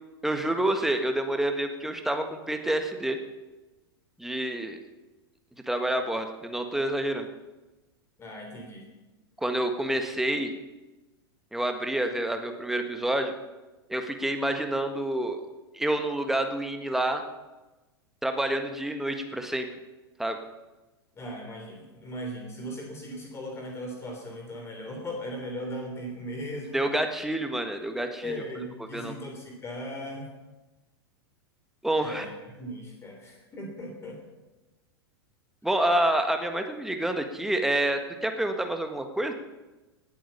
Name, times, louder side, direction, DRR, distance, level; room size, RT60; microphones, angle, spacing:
voice 1, 0.2-3.2 4.2-4.8 5.7-7.3 9.4-10.5 11.5-13.3 13.9-15.4 15.7-17.2 18.2-19.7 20.2-20.4 26.7-28.3 28.9-29.1 31.8-32.2 35.6-39.3, right 1 dB, 5° right, 6 dB, 1.6 m, -28 dB
voice 2, 8.2-8.9 21.1-26.8 28.2-30.3 32.0-34.2, equal, 20° left, 2 dB, 3.4 m, -38 dB
19.0 x 9.4 x 6.8 m, 1.1 s
figure-of-eight pair, 95°, 13 cm